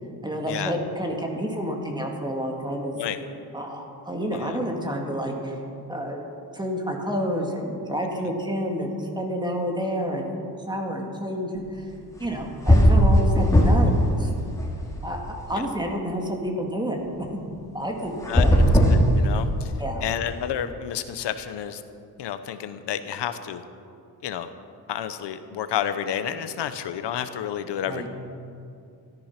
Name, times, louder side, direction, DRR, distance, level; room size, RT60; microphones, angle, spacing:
voice 1, 0.2-3.0 3.5-5.6 5.9-6.2 6.5-10.4 10.7-11.9 12.2-14.3 15.0-17.0 17.3-17.5 17.7-18.6 19.8-20.0 27.9-28.1, equal, 10° right, 1 dB, 1.8 m, -29 dB
sound 1, 12.2-12.4 12.7-14.0 14.3-15.4 18.2-19.7, equal, 10° left, 2.2 m, -18 dB
voice 2, 18.9-19.7 20.0-21.8 22.2-23.6 24.2-24.5 24.9-28.1, left 9 dB, 90° left, 10 dB, 0.9 m, -30 dB
14.0 x 13.5 x 5.9 m, 2.5 s
wide cardioid pair, 160°, 40 cm